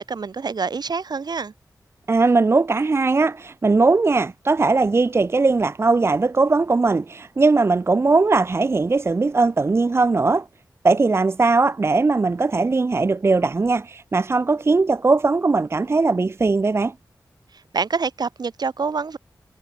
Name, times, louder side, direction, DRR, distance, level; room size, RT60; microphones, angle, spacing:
voice 1, 0.0-1.5 17.7-19.2, right 5 dB, 70° right, 5.6 m, -26 dB
voice 2, 2.1-10.5 10.8-16.9, right 3 dB, 35° right, 0.5 m, -19 dB
wide cardioid pair, 75°, 7 cm